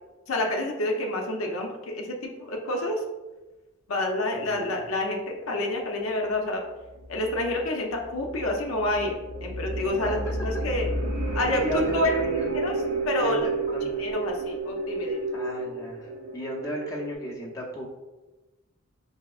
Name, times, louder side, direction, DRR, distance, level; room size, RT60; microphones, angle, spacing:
voice 1, 0.3-3.0 3.9-5.2 5.5-6.6 7.1-9.1 9.4-10.9 11.3-11.6 11.9-12.1 12.6-12.7 13.1-13.4 14.0-15.2, left 2 dB, 75° left, 1 dB, 0.6 m, -28 dB
voice 2, 4.3-4.8 10.0-10.5 11.6-12.5 13.2-13.9 15.3-18.0, right 1 dB, 15° left, -5 dB, 0.6 m, -34 dB
sound 1, 6.8-17.1, right 3 dB, 50° right, 0.7 m, -31 dB
4.7 x 2.8 x 2.4 m, 1.1 s
head